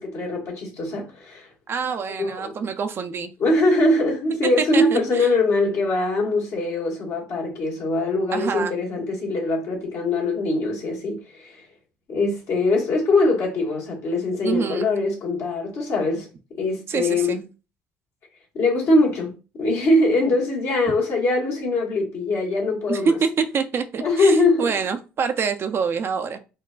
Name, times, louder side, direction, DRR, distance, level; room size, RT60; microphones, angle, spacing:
voice 1, 0.0-1.5 2.2-2.5 3.4-11.6 12.1-16.3 16.6-17.4 18.5-23.1 24.0-24.7, left 2 dB, 60° left, 1.4 m, -22 dB
voice 2, 1.7-3.3 4.6-5.3 8.3-8.8 14.4-14.9 16.9-17.4 22.9-26.4, right 6 dB, 45° right, 0.4 m, -26 dB
3.6 x 2.3 x 2.3 m
hypercardioid pair, 65°, 5 cm